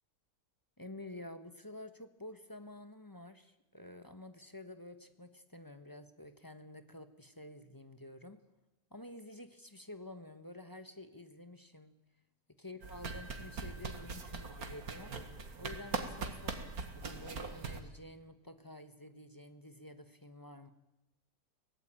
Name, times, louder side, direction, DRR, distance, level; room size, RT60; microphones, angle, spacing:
voice 1, 0.8-8.4 8.9-12.0 12.6-15.2 15.6-20.7, left 1 dB, 15° left, 9 dB, 1.1 m, -50 dB
sound 1, 12.8-17.8, right 4 dB, 65° right, 2.3 m, -41 dB
23.5 x 17.5 x 9.0 m, 0.96 s
omnidirectional pair, 1.7 m